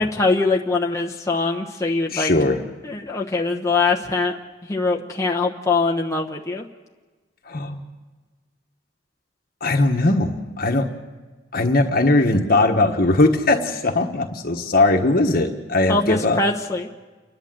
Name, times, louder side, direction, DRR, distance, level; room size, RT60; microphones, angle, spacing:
voice 1, 0.0-2.3 2.8-4.4 4.7-6.6 15.9-16.9, left 3 dB, 15° left, 0 dB, 1.0 m, -22 dB
voice 2, 2.1-2.6 7.5-7.8 9.6-10.9 11.5-16.4, left 2 dB, 50° left, 3 dB, 1.4 m, -19 dB
30.0 x 11.5 x 7.8 m, 1.3 s
head